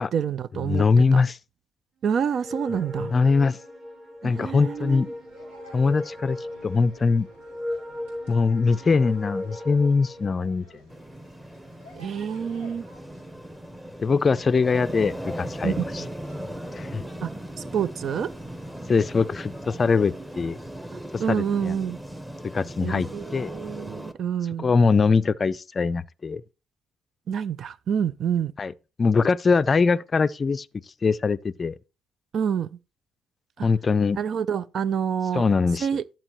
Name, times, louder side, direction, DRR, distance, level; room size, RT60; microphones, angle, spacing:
voice 1, 0.0-0.8 1.1-1.2 2.0-3.1 4.2-5.0 12.0-12.9 15.6-16.1 17.2-17.3 17.6-18.3 21.2-22.0 22.8-24.7 27.3-28.5 32.3-32.7 33.6-33.7 34.2-35.5 35.8-36.0, right 7 dB, 55° right, 0.4 m, -27 dB
voice 2, 0.6-1.4 2.7-2.8 3.1-3.6 4.2-5.1 5.7-6.4 6.6-7.3 8.3-10.6 14.0-16.0 16.8-17.0 18.9-20.6 21.1-21.7 22.5-23.5 24.6-26.4 28.6-28.7 29.0-30.7 31.0-31.8 33.6-34.2 35.3-35.9, left 4 dB, 35° left, 0.4 m, -22 dB
sound 1, 2.2-10.4, left 1 dB, 35° right, 3.5 m, -37 dB
sound 2, 4.1-22.6, equal, 85° right, 4.2 m, -55 dB
sound 3, 10.9-24.1, equal, 5° right, 1.0 m, -38 dB
11.0 x 7.5 x 3.0 m
hypercardioid pair, 55°, 0 cm